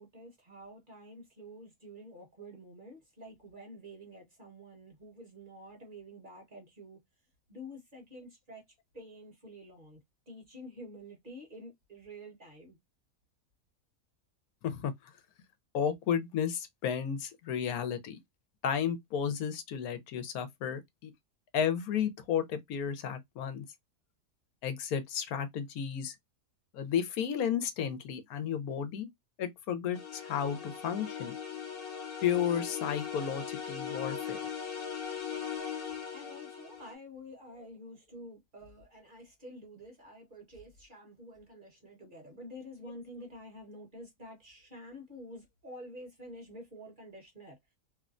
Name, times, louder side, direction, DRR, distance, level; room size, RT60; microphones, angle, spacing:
voice 1, 0.0-7.0 7.5-8.6 8.9-10.0 10.3-12.8 36.1-47.6, equal, 35° right, 1.2 m, -49 dB
voice 2, 15.7-18.2 18.6-21.1 21.5-23.6 24.6-26.2 26.7-29.1 29.4-31.3 32.2-34.4, left 8 dB, 80° left, 1.1 m, -33 dB
sound 1, 29.9-36.9, left 7 dB, 65° left, 1.3 m, -39 dB
3.0 x 2.1 x 2.4 m
omnidirectional pair, 1.5 m